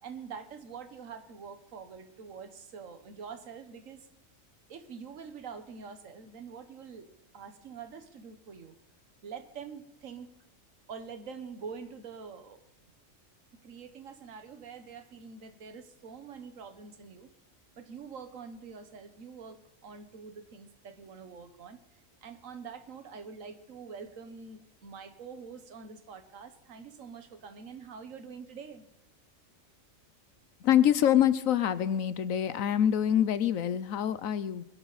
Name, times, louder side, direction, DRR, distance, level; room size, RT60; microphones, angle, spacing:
voice 1, 0.0-4.1 4.7-8.7 9.2-10.4 10.9-12.6 13.6-17.3 17.8-28.9, right 6 dB, 75° right, 9 dB, 1.6 m, -45 dB
voice 2, 30.6-34.7, left 10 dB, 80° left, 15 dB, 1.2 m, -25 dB
22.5 x 11.5 x 4.1 m, 0.90 s
omnidirectional pair, 1.4 m